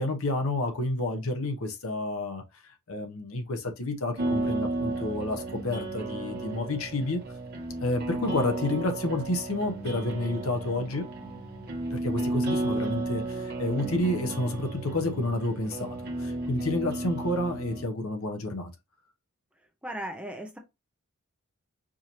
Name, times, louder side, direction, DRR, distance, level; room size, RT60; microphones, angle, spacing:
voice 1, 0.0-2.4 2.9-7.2 7.8-11.1 11.9-18.7, left 2 dB, 70° left, 0.9 m, -30 dB
sound 1, 4.2-17.8, right 2 dB, 45° right, 1.2 m, -33 dB
voice 2, 19.8-20.6, right 1 dB, 5° right, 0.6 m, -36 dB
4.8 x 2.7 x 2.9 m
head